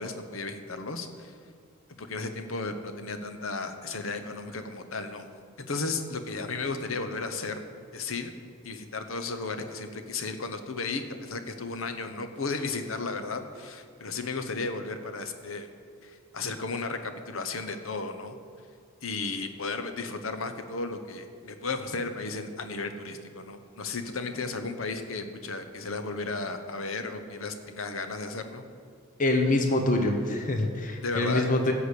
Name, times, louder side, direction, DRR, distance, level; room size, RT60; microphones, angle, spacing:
voice 1, 0.0-1.3 2.0-5.3 5.6-7.6 7.9-8.3 8.6-15.7 16.0-18.3 19.0-28.6 31.0-31.5, left 3 dB, 70° left, 8 dB, 1.0 m, -34 dB
voice 2, 29.2-31.7, left 2 dB, 40° left, 3 dB, 0.9 m, -25 dB
14.5 x 5.0 x 8.3 m, 2.2 s
head